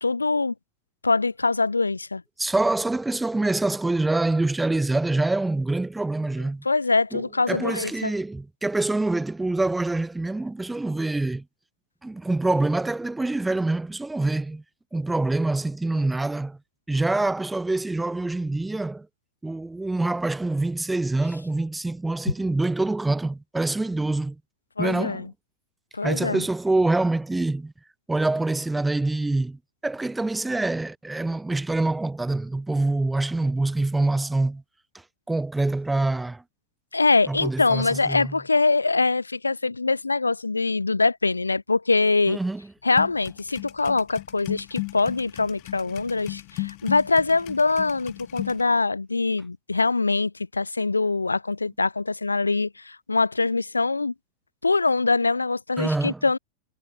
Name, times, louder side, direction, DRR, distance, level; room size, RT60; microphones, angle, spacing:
voice 1, 0.0-0.5 1.0-2.2 6.6-8.1 24.8-25.3 25.9-26.4 36.9-42.4 42.8-54.1 54.6-56.4, left 3 dB, 80° left, 1.0 m, -23 dB
voice 2, 2.4-6.6 7.1-11.4 12.0-14.6 14.9-16.6 16.9-19.1 19.4-24.4 24.8-25.3 26.0-27.7 28.1-34.6 35.3-36.4 37.3-38.3 42.3-42.7 55.8-56.2, right 2 dB, 5° right, 1.2 m, -25 dB
sound 1, 43.0-48.6, left 40 dB or more, 45° left, 2.5 m, -35 dB
figure-of-eight pair, 90°, 0 cm